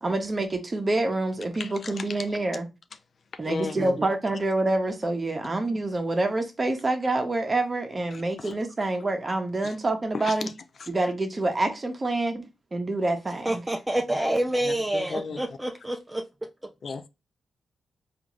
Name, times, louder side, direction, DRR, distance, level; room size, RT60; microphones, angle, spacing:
voice 1, 0.0-2.7 3.4-10.5 10.9-13.6, right 2 dB, 35° right, 0.9 m, -27 dB
voice 2, 1.5-2.1 3.4-4.0 8.1-8.6 9.6-9.7 10.1-10.4 10.8-10.9 14.6-15.4 16.8-17.1, left 4 dB, 60° left, 0.4 m, -35 dB
voice 3, 13.5-16.2, right 1 dB, 15° right, 0.4 m, -27 dB
3.5 x 2.5 x 3.0 m
cardioid pair, 55°, 0 cm